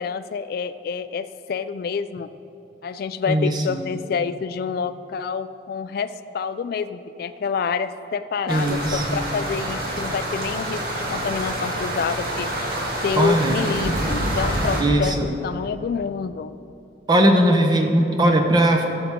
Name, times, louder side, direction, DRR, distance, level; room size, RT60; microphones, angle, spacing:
voice 1, 0.0-2.3 2.8-12.7 13.0-16.6, left 6 dB, 55° left, 12 dB, 0.3 m, -28 dB
voice 2, 3.3-3.8 8.5-9.2 13.2-13.6 14.8-15.3 17.1-18.8, right 1 dB, 25° right, 3 dB, 0.7 m, -19 dB
sound 1, 8.5-14.8, right 1 dB, 55° right, 1.6 m, -27 dB
15.5 x 7.1 x 3.6 m, 2.8 s
head